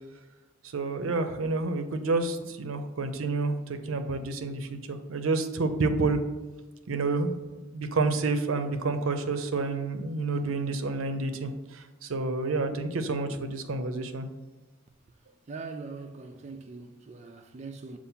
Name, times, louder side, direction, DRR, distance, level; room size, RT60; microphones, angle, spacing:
voice 1, 0.6-6.2 6.9-14.3, right 3 dB, 80° right, 0.6 m, -29 dB
voice 2, 15.5-18.0, right 4 dB, 35° right, 0.3 m, -41 dB
6.8 x 2.5 x 5.5 m
head